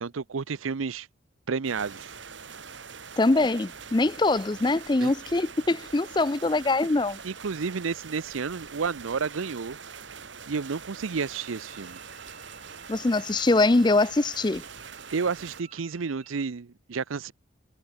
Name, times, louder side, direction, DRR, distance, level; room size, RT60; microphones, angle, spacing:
voice 1, 0.0-1.1 1.5-2.1 5.0-5.1 6.8-6.9 7.2-9.8 10.5-12.0 15.1-17.3, right 5 dB, 90° right, 0.6 m, -31 dB
sound 1, 1.6-15.6, right 6 dB, 70° right, 2.5 m, -44 dB
voice 2, 3.2-7.2 12.9-14.6, left 2 dB, 20° left, 0.5 m, -23 dB
Bowed string instrument, 11.4-16.4, right 6 dB, 35° right, 4.7 m, -53 dB
head